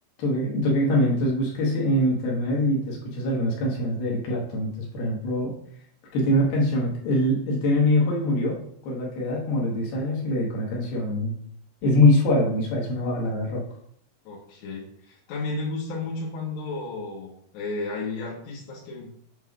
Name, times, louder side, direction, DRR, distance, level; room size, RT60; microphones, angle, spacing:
voice 1, 0.2-5.5 6.1-8.5 8.8-11.4 11.8-13.6, left 1 dB, 65° left, -2 dB, 2.8 m, -23 dB
voice 2, 14.3-19.1, left 3 dB, 85° left, -5 dB, 3.5 m, -33 dB
7.9 x 5.8 x 2.4 m, 0.65 s
omnidirectional pair, 4.9 m